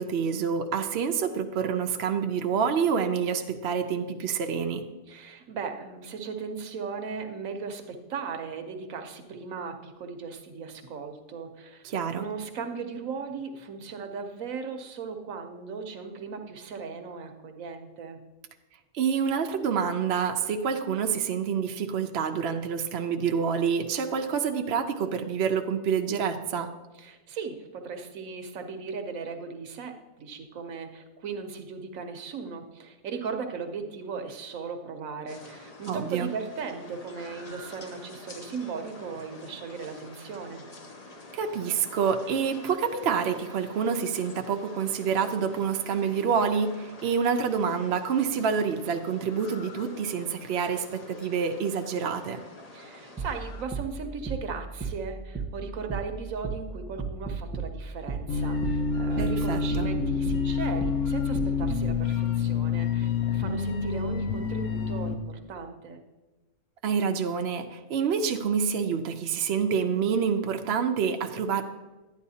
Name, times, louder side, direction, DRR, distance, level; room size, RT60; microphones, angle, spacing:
voice 1, 0.0-4.8 11.8-12.3 18.9-26.7 35.9-36.3 41.3-52.4 59.2-59.9 66.8-71.6, right 6 dB, 60° right, 5 dB, 0.8 m, -27 dB
voice 2, 5.1-11.9 12.1-18.2 27.0-40.6 52.7-66.0, right 5 dB, 80° right, 6 dB, 1.2 m, -37 dB
sound 1, 35.3-53.6, left 2 dB, 35° left, 0.7 m, -47 dB
sound 2, 53.2-61.9, right 4 dB, 10° right, 0.9 m, -35 dB
sound 3, 58.3-65.1, left 5 dB, 70° left, 1.1 m, -27 dB
11.5 x 9.4 x 2.8 m, 1.1 s
omnidirectional pair, 1.4 m